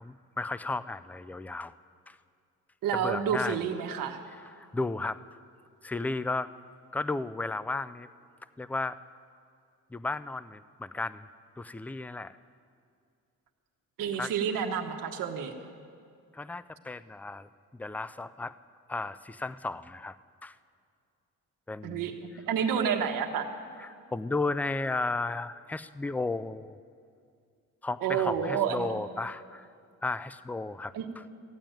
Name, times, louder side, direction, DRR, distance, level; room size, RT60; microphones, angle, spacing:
voice 1, 0.0-1.7 2.1-2.2 2.9-3.6 4.6-5.2 5.8-6.5 6.9-8.1 8.6-9.0 9.9-11.3 11.6-12.4 14.2-14.3 16.3-18.6 18.9-20.2 20.4-20.5 21.7-22.1 23.8-26.8 27.8-29.7 30.0-30.9, left 3 dB, 5° left, 15 dB, 0.3 m, -34 dB
voice 2, 2.8-4.2 14.0-15.5 21.8-22.1 22.5-23.5 28.0-29.0 30.9-31.1, right 7 dB, 85° right, 4 dB, 1.4 m, -29 dB
15.0 x 8.8 x 9.1 m, 2.4 s
cardioid pair, 110°, 32 cm